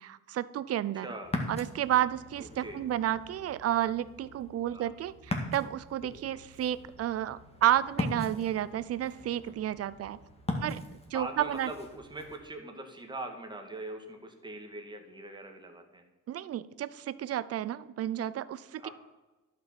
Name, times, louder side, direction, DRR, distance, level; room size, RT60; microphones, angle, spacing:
voice 1, 0.4-1.1 1.5-2.4 2.8-5.1 5.5-5.6 5.9-7.4 7.6-10.2 10.6-10.7 11.1-11.7 16.5-16.6 17.3-18.4, right 12 dB, 55° right, 17 dB, 0.5 m, -30 dB
voice 2, 0.9-1.3 2.4-2.8 4.7-4.9 11.1-16.0 18.8-18.9, right 2 dB, 15° right, 4 dB, 1.7 m, -42 dB
Ocean, 1.2-12.4, left 1 dB, 20° left, 1.9 m, -40 dB
11.5 x 5.8 x 5.9 m, 1.1 s
cardioid pair, 90°, 30 cm